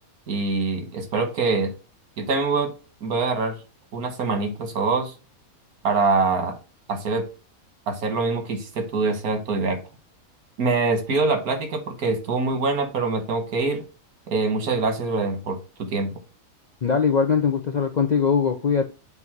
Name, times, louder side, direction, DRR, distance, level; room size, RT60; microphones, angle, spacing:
voice 1, 0.3-1.7 2.2-2.7 3.0-3.6 3.9-5.1 5.8-6.5 6.9-7.3 7.9-9.8 10.6-13.8 14.3-16.1, right 3 dB, 90° right, 6 dB, 1.8 m, -24 dB
voice 2, 16.8-18.8, left 6 dB, 60° left, 5 dB, 0.4 m, -21 dB
7.7 x 2.7 x 6.0 m, 0.32 s
omnidirectional pair, 1.5 m